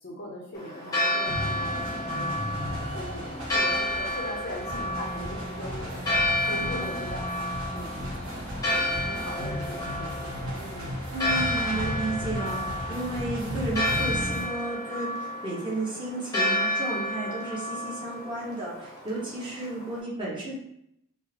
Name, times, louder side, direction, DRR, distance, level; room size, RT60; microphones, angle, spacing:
voice 1, 0.0-2.3 2.6-6.0 6.4-8.8 9.0-11.0, left 1 dB, 45° left, -1 dB, 0.6 m, -41 dB
Church bell, 0.5-20.0, left 1 dB, 15° left, 0.8 m, -31 dB
sound 1, 1.2-14.5, equal, 65° right, 1.1 m, -35 dB
voice 2, 6.4-7.0 11.1-20.5, right 2 dB, 20° right, -7 dB, 1.1 m, -33 dB
3.7 x 2.6 x 2.9 m, 0.77 s
head